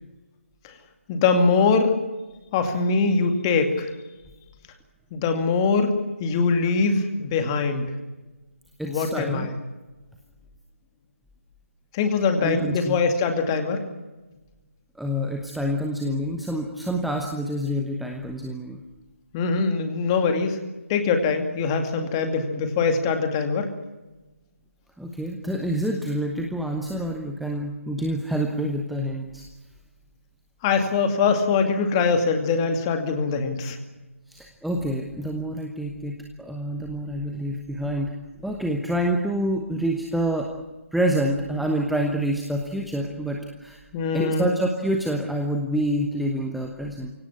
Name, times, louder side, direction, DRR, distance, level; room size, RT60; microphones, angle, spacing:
voice 1, 1.1-1.9 2.5-3.9 5.1-5.9 6.2-7.8 8.8-9.5 11.9-13.8 19.3-20.6 20.9-23.7 30.6-33.8 43.9-44.5, left 4 dB, 20° left, 6 dB, 2.3 m, -22 dB
voice 2, 8.8-9.5 12.4-13.0 15.0-18.8 25.0-29.4 34.3-38.1 38.4-40.5 40.9-43.8 44.1-47.1, equal, ahead, 2 dB, 1.0 m, -27 dB
24.0 x 17.5 x 9.8 m, 1.2 s
figure-of-eight pair, 150°, 7 cm